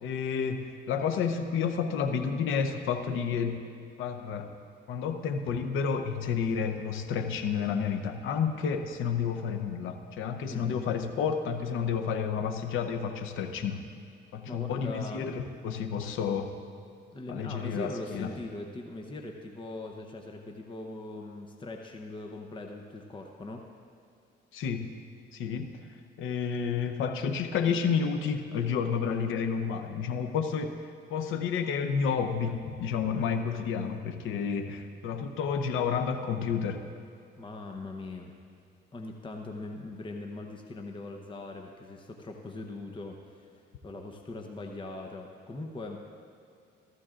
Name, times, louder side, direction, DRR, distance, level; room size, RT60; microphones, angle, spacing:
voice 1, 0.0-3.6 4.0-4.5 4.9-13.8 14.3-16.5 17.3-18.3 24.5-24.9 25.3-25.7 26.2-30.8 31.1-36.8, left 6 dB, 85° left, 7 dB, 0.8 m, -30 dB
voice 2, 10.5-10.8 14.5-15.3 17.1-23.6 33.1-33.3 37.4-38.3 38.9-46.0, left 2 dB, 25° left, 2 dB, 0.9 m, -41 dB
15.0 x 14.5 x 2.5 m, 2.5 s
cardioid pair, 90°, 20 cm